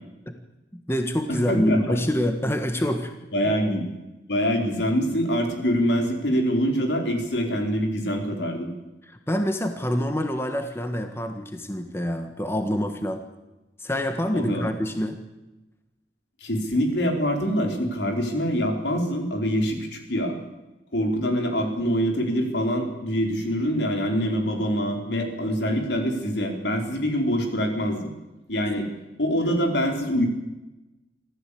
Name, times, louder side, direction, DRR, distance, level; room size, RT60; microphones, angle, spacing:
voice 1, 0.7-3.1 3.5-3.6 9.0-13.2 13.8-15.2 28.6-28.8, equal, 15° left, 6 dB, 1.6 m, -26 dB
voice 2, 1.3-2.0 3.3-3.9 4.3-8.7 14.3-14.6 16.4-20.3 20.9-28.1 28.5-28.9 29.2-30.2, equal, 70° left, 3 dB, 4.5 m, -25 dB
25.5 x 15.5 x 8.6 m, 1.0 s
head